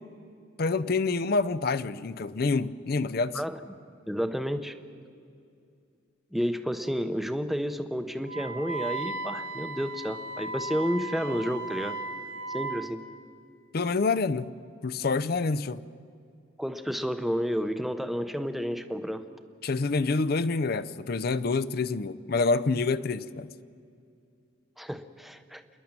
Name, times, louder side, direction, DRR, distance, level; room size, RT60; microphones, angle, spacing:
voice 1, 0.6-3.4 13.7-14.5 14.8-15.8 19.6-23.5, left 3 dB, 50° left, 16 dB, 0.5 m, -27 dB
voice 2, 4.1-4.8 6.3-12.0 12.5-13.0 16.6-19.3 24.8-25.6, equal, ahead, 9 dB, 0.7 m, -31 dB
Wind instrument woodwind instrument, 8.3-12.8, right 3 dB, 60° right, 1.7 m, -36 dB
27.0 x 10.5 x 8.9 m, 2.4 s
head